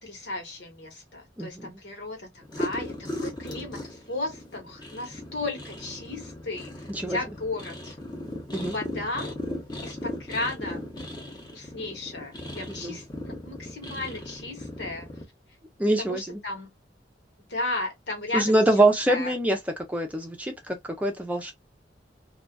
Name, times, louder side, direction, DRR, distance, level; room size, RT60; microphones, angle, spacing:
voice 1, 0.0-7.9 8.6-9.3 9.8-10.8 11.5-13.0 13.5-15.1 16.0-16.7 17.5-18.6 19.1-19.4, left 2 dB, 75° left, 1.3 m, -34 dB
voice 2, 1.4-1.8 6.9-7.2 8.5-8.8 12.7-13.0 15.8-16.4 18.3-19.6 19.9-21.5, right 1 dB, 10° right, 0.6 m, -24 dB
sound 1, 2.4-15.2, left 1 dB, 25° left, 0.8 m, -37 dB
2.4 x 2.4 x 2.2 m
head